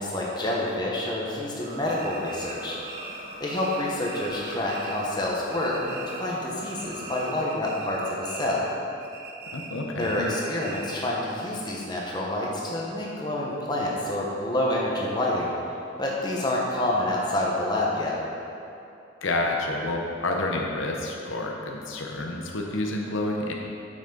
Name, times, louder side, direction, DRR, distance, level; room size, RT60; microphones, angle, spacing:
voice 1, 0.0-2.8 3.4-8.6 10.0-15.5 16.0-18.2, left 1 dB, 20° left, -4 dB, 1.1 m, -28 dB
sound 1, 1.6-7.4, right 1 dB, 65° left, 1.1 m, -42 dB
sound 2, 1.9-5.2 5.5-6.4 6.7-8.7 9.0-11.1, right 3 dB, 55° right, 0.9 m, -41 dB
voice 2, 9.5-10.3 19.2-23.5, left 2 dB, 80° left, 0 dB, 0.8 m, -29 dB
8.8 x 6.1 x 3.9 m, 2.7 s
head